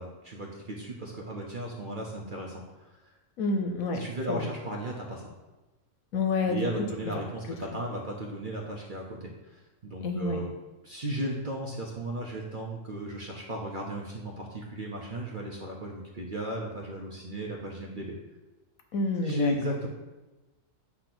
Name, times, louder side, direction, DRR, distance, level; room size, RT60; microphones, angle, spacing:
voice 1, 0.0-2.6 3.0-3.1 3.9-5.3 6.4-10.5 10.8-18.1 19.2-19.9, right 1 dB, 45° right, -2 dB, 0.8 m, -35 dB
voice 2, 3.4-4.5 6.1-6.7 10.0-10.4 18.9-19.5, left 3 dB, 65° left, 5 dB, 1.1 m, -28 dB
8.5 x 2.9 x 5.9 m, 1.1 s
omnidirectional pair, 1.6 m